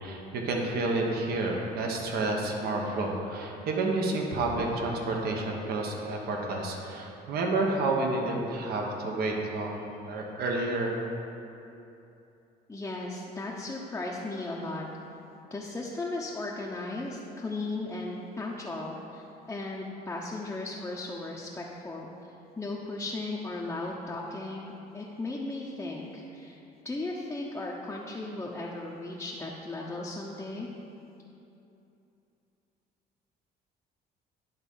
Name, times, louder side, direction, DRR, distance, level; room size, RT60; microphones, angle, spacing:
voice 1, 0.0-10.9, right 2 dB, 65° right, 0 dB, 1.2 m, -30 dB
voice 2, 12.7-14.9 15.5-22.1 22.6-26.6 26.8-30.7, left 2 dB, 15° left, -4 dB, 0.7 m, -36 dB
11.0 x 3.6 x 5.5 m, 2.8 s
cardioid pair, 110°, 17 cm